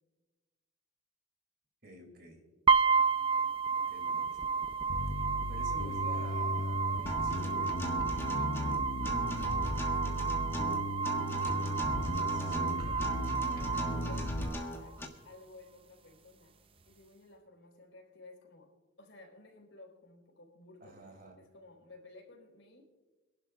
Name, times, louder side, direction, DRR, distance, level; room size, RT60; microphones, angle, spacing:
voice 1, 1.8-2.4 3.9-4.4 5.2-7.8 12.3-13.5 13.8-13.9 20.8-21.4, right 1 dB, 50° right, 4 dB, 2.9 m, -51 dB
sound 1, 2.7-14.7, right 5 dB, 25° right, 0.5 m, -32 dB
Bass guitar, 4.9-14.5, left 1 dB, 45° left, 0.7 m, -36 dB
Acoustic guitar, 7.1-15.0, right 1 dB, 10° left, 1.5 m, -40 dB
voice 2, 8.9-11.2 13.5-16.6 16.8-22.9, left 2 dB, 75° left, 0 dB, 4.5 m, -55 dB
26.5 x 11.5 x 2.5 m, 1.2 s
head